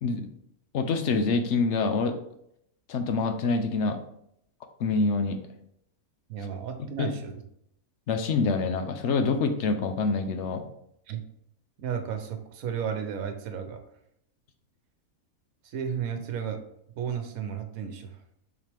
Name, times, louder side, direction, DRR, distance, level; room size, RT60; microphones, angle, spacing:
voice 1, 0.7-2.1 2.9-4.0 4.8-5.4 6.8-7.1 8.1-10.7, left 4 dB, 60° left, 8 dB, 0.9 m, -26 dB
voice 2, 6.3-7.4 11.1-11.2 11.8-13.8 15.6-16.6 16.9-18.2, right 7 dB, 75° right, 7 dB, 1.2 m, -33 dB
7.4 x 4.1 x 3.4 m, 0.74 s
omnidirectional pair, 1.5 m